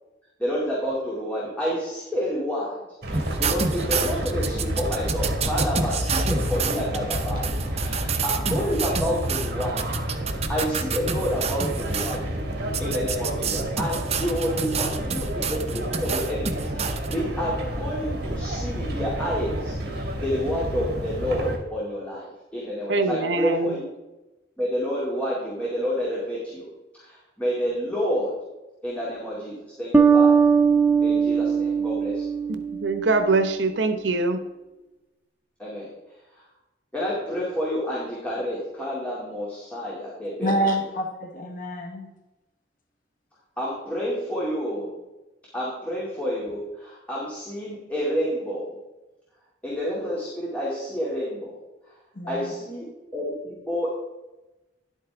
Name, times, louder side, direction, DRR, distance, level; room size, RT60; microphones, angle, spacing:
voice 1, 0.4-2.8 3.0-23.8 24.6-26.7 27.0-28.3 28.8-30.4 31.0-32.2 35.6-35.9 36.3-36.4 36.9-40.6 43.6-45.0 45.5-48.7 49.6-51.6 52.3-54.0, equal, 10° left, -7 dB, 2.5 m, -29 dB
sound 1, 3.0-21.6, equal, 60° right, 2.7 m, -30 dB
sound 2, 3.1-12.2 12.7-17.1, right 5 dB, 35° right, 0.8 m, -29 dB
voice 2, 22.9-23.8 32.5-34.4, right 3 dB, 80° right, 8 dB, 0.9 m, -23 dB
sound 3, 29.9-33.3, right 6 dB, 10° right, 0.6 m, -20 dB
voice 3, 40.4-42.1 52.2-52.5, right 1 dB, 50° left, 2 dB, 1.2 m, -27 dB
11.0 x 8.5 x 3.5 m, 1.0 s
head